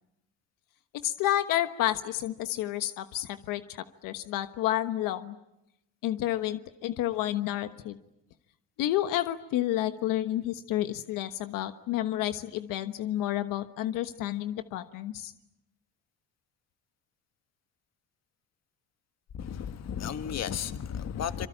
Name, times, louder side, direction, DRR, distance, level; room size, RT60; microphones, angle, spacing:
voice 1, 0.9-5.4 6.0-8.0 8.8-15.3, left 13 dB, 80° left, 1.3 m, -30 dB
voice 2, 19.4-21.5, left 8 dB, 55° left, 1.7 m, -34 dB
26.5 x 24.0 x 8.8 m
cardioid pair, 105°, 32 cm